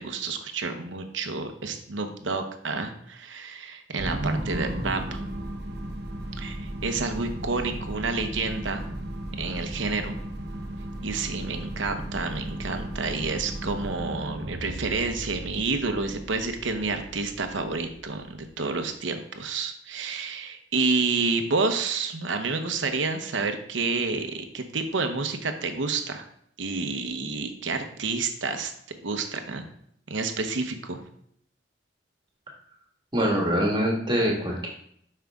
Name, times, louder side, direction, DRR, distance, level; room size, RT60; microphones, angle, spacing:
voice 1, 0.0-5.2 6.4-8.9 9.4-10.2 11.0-26.3 26.6-28.7 29.0-29.6 30.1-31.0, right 4 dB, 85° right, 6 dB, 0.9 m, -29 dB
sound 1, 4.0-18.5, right 1 dB, 60° right, 1.0 m, -35 dB
voice 2, 33.1-34.7, equal, 25° right, -1 dB, 1.6 m, -24 dB
7.6 x 5.6 x 3.6 m, 0.68 s
head